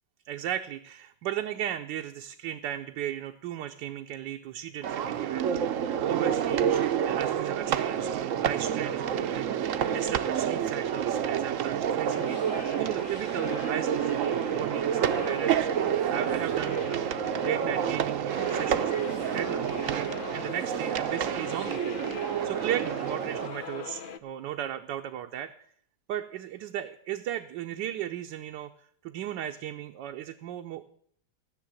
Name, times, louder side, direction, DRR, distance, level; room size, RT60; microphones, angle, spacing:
voice 1, 0.2-6.7 7.0-12.4 12.8-17.1 17.4-21.8 22.4-25.5 26.1-28.7 29.0-30.8, right 11 dB, 80° right, 5 dB, 1.3 m, -36 dB
sound 1, 4.8-23.5, right 9 dB, 60° right, 0.9 m, -29 dB
sound 2, 12.1-24.2, left 7 dB, 80° left, 0.4 m, -41 dB
14.0 x 6.7 x 8.8 m, 0.65 s
omnidirectional pair, 1.9 m